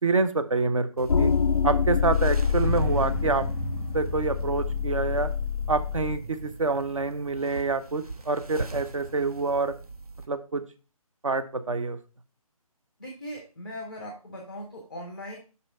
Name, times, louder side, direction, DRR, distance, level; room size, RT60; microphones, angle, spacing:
voice 1, 0.0-1.3 1.6-3.5 3.9-5.3 5.7-9.7 10.3-10.6 11.2-12.0, right 3 dB, 60° right, 11 dB, 0.7 m, -27 dB
sound 1, 1.0-10.3, right 3 dB, 80° right, 1.0 m, -42 dB
sound 2, 1.1-6.2, left 6 dB, 70° left, 0.4 m, -26 dB
sound 3, 2.6-8.7, right 4 dB, 40° right, 2.0 m, -39 dB
voice 2, 13.0-15.4, equal, ahead, -1 dB, 0.4 m, -39 dB
5.8 x 5.6 x 3.9 m, 0.34 s
figure-of-eight pair, 150°, 19 cm